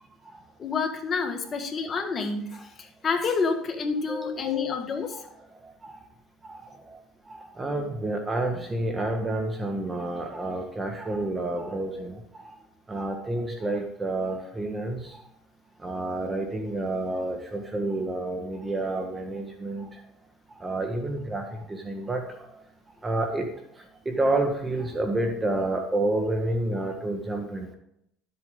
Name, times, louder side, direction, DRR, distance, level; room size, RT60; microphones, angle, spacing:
voice 1, 0.6-5.2, left 5 dB, 35° left, 6 dB, 2.0 m, -28 dB
voice 2, 4.1-4.4 5.1-5.2 5.6-6.0 6.4-7.0 7.3-12.5 12.9-15.2 15.8-20.0 20.5-22.5 23.0-23.5 24.0-27.7, right 2 dB, 20° right, 4 dB, 1.6 m, -29 dB
12.5 x 8.0 x 3.8 m, 0.73 s
supercardioid pair, 90°, 0 cm